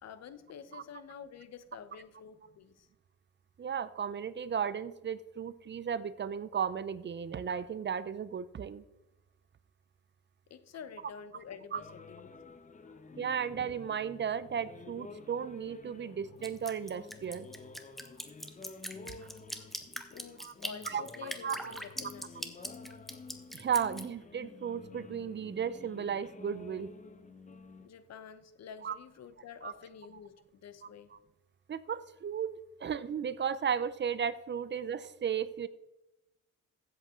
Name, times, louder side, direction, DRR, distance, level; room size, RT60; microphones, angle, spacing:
voice 1, 0.0-2.9 10.5-12.3 12.8-13.2 16.0-16.4 18.1-18.4 19.2-19.7 20.0-22.6 27.8-31.1, left 7 dB, 60° left, 12 dB, 1.0 m, -49 dB
voice 2, 3.6-8.8 11.7-11.8 13.2-17.5 19.2-19.3 20.4-20.5 20.9-21.0 21.4-21.8 23.5-26.9 28.8-29.0 29.6-29.7 31.7-35.7, right 7 dB, 35° right, 16 dB, 0.6 m, -35 dB
sound 1, 11.7-27.9, left 4 dB, 25° left, 0.9 m, -51 dB
Drip, 16.4-24.0, equal, ahead, 1.2 m, -41 dB
15.0 x 8.1 x 3.8 m, 1.0 s
cardioid pair, 90°, 30 cm